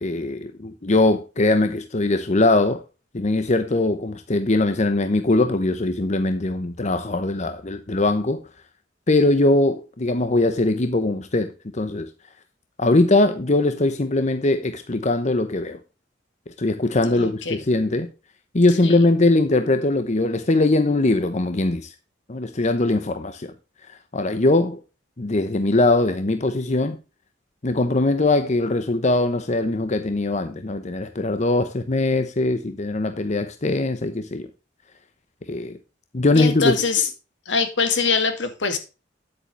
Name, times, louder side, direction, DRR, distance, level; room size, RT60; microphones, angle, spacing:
voice 1, 0.0-2.8 3.1-8.4 9.1-12.1 12.8-15.8 16.6-18.1 18.5-21.9 22.3-23.5 24.1-24.8 25.2-27.0 27.6-34.5 35.5-35.8 36.1-36.8, left 2 dB, 40° left, 0.9 m, -21 dB
voice 2, 17.1-17.6 18.8-19.0 36.3-37.1 37.5-38.8, left 5 dB, 80° left, 2.2 m, -23 dB
10.0 x 8.5 x 3.2 m
head